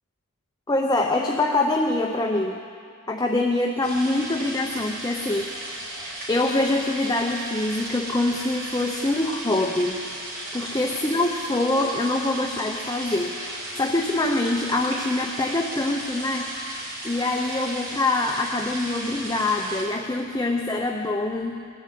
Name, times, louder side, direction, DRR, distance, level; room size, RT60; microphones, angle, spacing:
voice 1, 0.7-2.6 3.1-6.0 6.3-10.0 10.5-16.7 17.0-21.6, left 2 dB, 15° left, 1 dB, 0.7 m, -25 dB
sound 1, 3.8-19.8, right 1 dB, 55° right, 4.8 m, -35 dB
19.5 x 7.8 x 8.4 m, 2.2 s
head